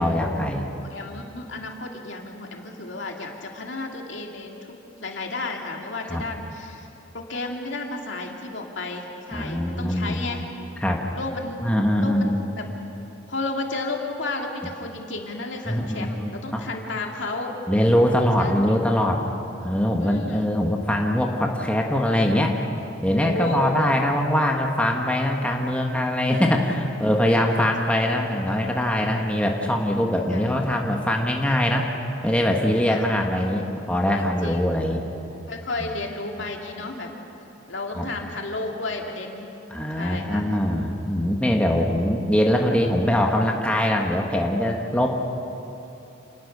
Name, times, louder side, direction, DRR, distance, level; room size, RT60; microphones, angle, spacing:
voice 1, 0.0-0.7 6.1-6.2 9.3-10.2 10.8-11.0 11.6-12.4 15.7-16.7 17.7-19.2 19.6-22.6 23.0-31.9 32.2-35.0 35.8-35.9 37.9-38.1 39.7-45.1, left 1 dB, 5° left, 1 dB, 1.4 m, -22 dB
voice 2, 0.8-6.9 7.1-10.4 11.1-11.6 12.0-12.7 13.3-17.6 18.4-18.7 20.0-20.5 23.1-23.8 27.8-28.0 30.3-30.6 32.9-33.0 34.1-34.7 35.5-37.1 37.7-39.5 39.9-40.4, left 2 dB, 65° left, 1 dB, 2.7 m, -32 dB
28.0 x 19.5 x 6.7 m, 2.9 s
head